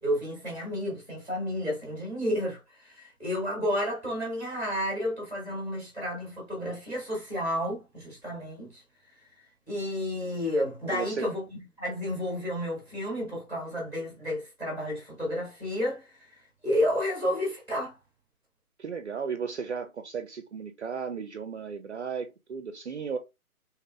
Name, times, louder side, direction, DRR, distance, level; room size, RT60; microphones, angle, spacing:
voice 1, 0.0-8.8 9.7-11.5 11.8-17.9, left 1 dB, 5° left, 1.2 m, -31 dB
voice 2, 10.9-11.3 18.8-23.2, right 6 dB, 50° right, 0.5 m, -35 dB
3.1 x 3.0 x 2.4 m
figure-of-eight pair, 155°, 44 cm